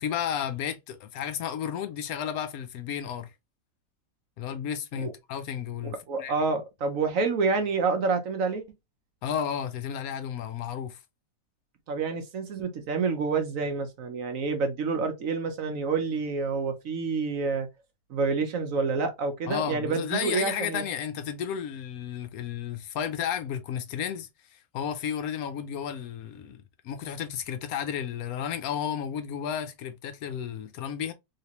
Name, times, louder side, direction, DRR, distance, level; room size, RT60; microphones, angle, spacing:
voice 1, 0.0-3.3 4.4-6.3 9.2-11.0 19.5-31.1, left 8 dB, 70° left, 1.0 m, -33 dB
voice 2, 6.1-8.6 11.9-17.7 18.1-20.8, right 4 dB, 65° right, 1.0 m, -28 dB
3.3 x 2.9 x 2.8 m
omnidirectional pair, 1.8 m